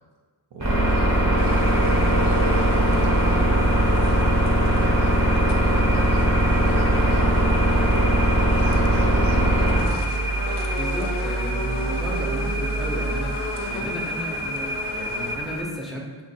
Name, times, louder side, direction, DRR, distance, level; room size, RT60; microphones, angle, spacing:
voice 1, 0.5-3.9 4.6-7.4 8.2-10.2, right 2 dB, 70° right, -1 dB, 0.7 m, -36 dB
sound 1, 0.6-15.6, right 1 dB, 40° right, 1.1 m, -21 dB
sound 2, 1.4-15.4, left 2 dB, 65° left, 0.5 m, -34 dB
voice 2, 10.8-16.2, equal, ahead, -2 dB, 0.5 m, -34 dB
2.9 x 2.5 x 4.1 m, 1.4 s
wide cardioid pair, 100°, 44 cm